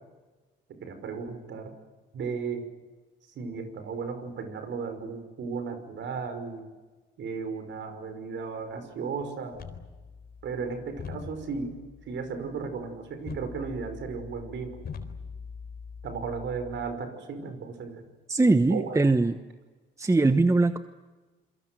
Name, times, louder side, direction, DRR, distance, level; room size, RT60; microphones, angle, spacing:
voice 1, 0.8-1.7 2.1-2.7 3.4-6.7 7.2-9.6 10.4-11.8 12.0-14.8 16.0-18.1 18.7-19.0, right 5 dB, 70° right, 8 dB, 5.7 m, -35 dB
sound 1, 9.5-16.9, left 5 dB, 50° left, 4.0 m, -43 dB
voice 2, 18.3-19.3 20.0-20.8, right 3 dB, 15° right, 10 dB, 1.1 m, -21 dB
28.0 x 23.0 x 7.8 m, 1.3 s
cardioid pair, 90°, 20 cm